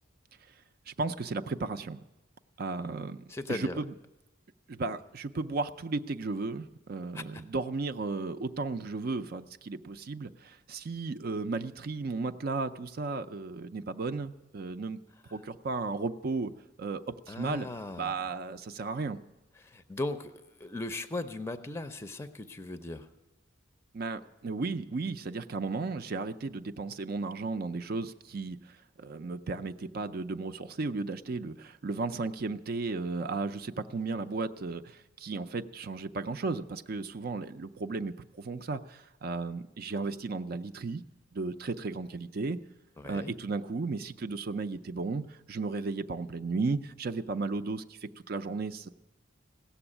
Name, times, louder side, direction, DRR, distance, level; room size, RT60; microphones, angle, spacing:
voice 1, 0.9-2.0 2.6-3.2 3.5-3.9 4.7-15.0 15.3-16.5 16.8-17.7 18.0-19.2 23.9-41.0 41.3-42.6 43.0-48.9, right 3 dB, 50° right, 8 dB, 0.5 m, -34 dB
voice 2, 3.3-3.8 7.1-7.4 17.3-18.1 19.6-23.1 43.0-43.3, left 2 dB, 15° left, 10 dB, 0.6 m, -38 dB
16.5 x 7.0 x 9.9 m, 1.0 s
head